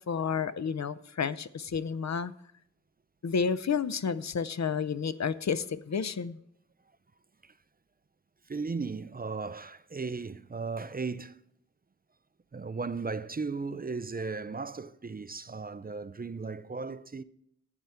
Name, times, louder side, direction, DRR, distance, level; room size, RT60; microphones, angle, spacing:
voice 1, 0.1-2.3 3.2-6.4, left 6 dB, 65° left, 0.6 m, -31 dB
voice 2, 8.5-11.4 12.5-17.2, right 4 dB, 30° right, 0.5 m, -36 dB
12.0 x 9.1 x 3.5 m
wide cardioid pair, 85°, 29 cm